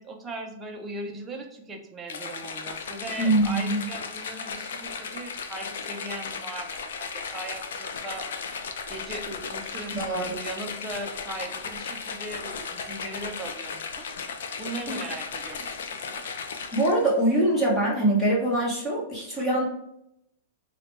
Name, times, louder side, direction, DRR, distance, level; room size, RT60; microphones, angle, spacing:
voice 1, 0.0-8.3 8.9-14.1 14.6-16.2, right 2 dB, 10° right, 2 dB, 0.4 m, -39 dB
sound 1, 2.1-17.2, left 5 dB, 75° left, 0.4 m, -36 dB
voice 2, 3.2-3.8 9.9-10.3 14.9-15.0 16.2-16.5 16.7-19.7, right 1 dB, 5° left, -5 dB, 0.8 m, -24 dB
3.9 x 2.1 x 3.1 m, 0.77 s
supercardioid pair, 180°, 0 cm